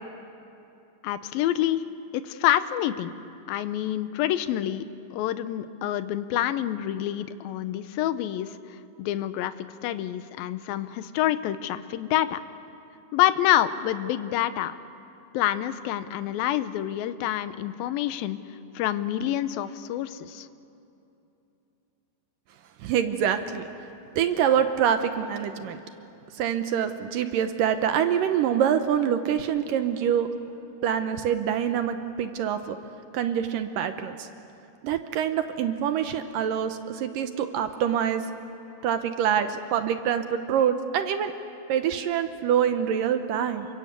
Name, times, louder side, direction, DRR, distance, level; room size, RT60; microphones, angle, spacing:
voice 1, 1.0-1.8 2.1-3.1 3.5-4.9 5.1-12.4 13.1-14.7 15.3-18.4 18.8-20.5, left 12 dB, 80° left, 12 dB, 2.5 m, -27 dB
voice 2, 22.8-23.6 24.2-25.8 26.3-30.3 30.8-32.8 33.1-34.3 34.8-38.3 38.8-41.3 41.7-43.7, right 9 dB, 75° right, 8 dB, 2.4 m, -25 dB
28.5 x 24.5 x 8.2 m, 2.8 s
omnidirectional pair, 4.3 m